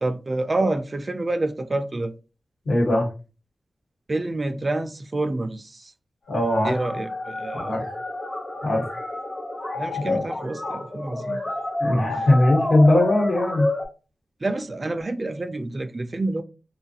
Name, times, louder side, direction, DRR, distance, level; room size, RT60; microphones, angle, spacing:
voice 1, 0.0-2.1 4.1-5.9 6.6-7.8 9.8-11.4 12.1-12.3 14.4-16.4, right 2 dB, 30° right, 0.3 m, -28 dB
voice 2, 2.6-3.1 6.3-6.7 7.5-7.8 8.6-8.8 10.1-10.2 11.8-13.7, left 1 dB, 65° left, 1.2 m, -20 dB
sound 1, 6.5-13.9, left 2 dB, 35° left, 1.0 m, -29 dB
3.7 x 2.3 x 2.7 m
wide cardioid pair, 110°, 0 cm